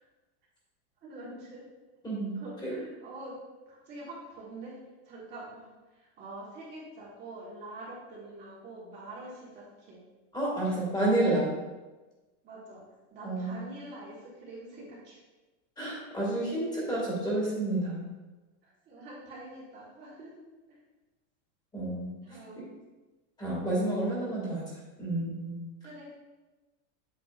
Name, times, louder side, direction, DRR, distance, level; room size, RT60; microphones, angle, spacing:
voice 1, 1.0-1.6 2.3-3.4 3.7-4.8 5.0-10.0 12.4-12.8 13.1-15.2 18.6-20.3 20.7-20.8 22.2-22.6 25.8-26.1, right 2 dB, 25° right, -6 dB, 1.6 m, -45 dB
voice 2, 2.0-2.8 10.3-11.5 13.2-13.5 15.8-18.1 21.7-22.1 23.4-24.6 25.0-25.6, right 1 dB, 10° left, -6 dB, 2.2 m, -30 dB
8.3 x 6.7 x 2.5 m, 1.2 s
supercardioid pair, 165°, 37 cm